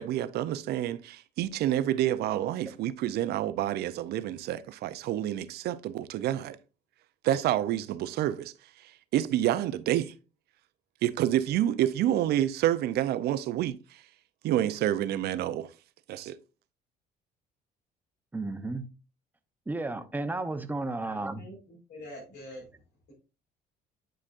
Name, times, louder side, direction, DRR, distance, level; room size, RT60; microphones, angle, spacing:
voice 1, 0.0-6.6 7.2-8.5 9.1-10.1 11.0-14.0 14.4-15.7 16.1-16.4, right 12 dB, 70° right, 0.6 m, -28 dB
voice 2, 18.3-18.8 19.7-21.4, right 2 dB, 10° right, 0.7 m, -33 dB
voice 3, 20.9-22.7, left 1 dB, 80° left, 4.3 m, -45 dB
9.8 x 5.0 x 2.5 m
cardioid pair, 110°, 17 cm